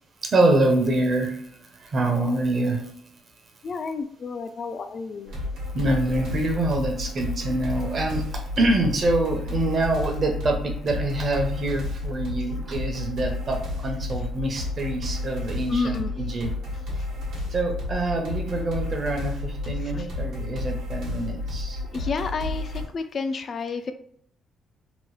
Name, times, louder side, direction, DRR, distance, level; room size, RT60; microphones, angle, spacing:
voice 1, 0.2-2.9 5.7-16.5 17.5-22.1, right 2 dB, 45° right, 3 dB, 0.7 m, -25 dB
voice 2, 3.6-5.4 15.7-16.1 19.9-20.1 21.9-23.9, left 4 dB, 50° left, 9 dB, 0.3 m, -30 dB
sound 1, 5.3-22.9, left 2 dB, 80° right, 1.1 m, -31 dB
2.9 x 2.1 x 3.1 m, 0.66 s
cardioid pair, 90°, 0 cm